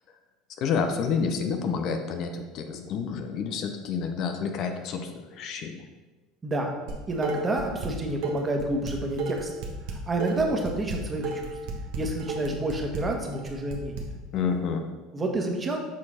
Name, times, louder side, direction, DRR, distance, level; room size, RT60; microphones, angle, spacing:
voice 1, 0.6-5.9 14.3-14.9, left 6 dB, 55° left, 6 dB, 0.8 m, -29 dB
Dishes pots and pans, 6.9-7.9 8.2-14.0, right 4 dB, 65° right, 1.2 m, -33 dB
voice 2, 7.1-9.5 10.1-11.5 12.0-14.1 15.1-15.8, right 1 dB, 25° right, 1 dB, 1.5 m, -29 dB
7.4 x 4.6 x 4.3 m, 1.2 s
hypercardioid pair, 75°, 0 cm